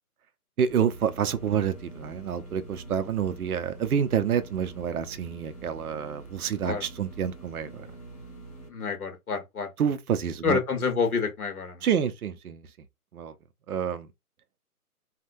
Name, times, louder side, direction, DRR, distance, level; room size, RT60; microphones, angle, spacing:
voice 1, 0.6-7.9 9.8-10.6 11.8-12.6 13.1-13.3 13.7-14.1, right 8 dB, 70° right, 0.6 m, -28 dB
sound 1, 0.7-8.7, right 2 dB, 25° left, 0.9 m, -45 dB
voice 2, 8.7-9.7 10.4-11.8, left 5 dB, 70° left, 1.2 m, -28 dB
3.5 x 2.2 x 2.6 m
hypercardioid pair, 170°, 46 cm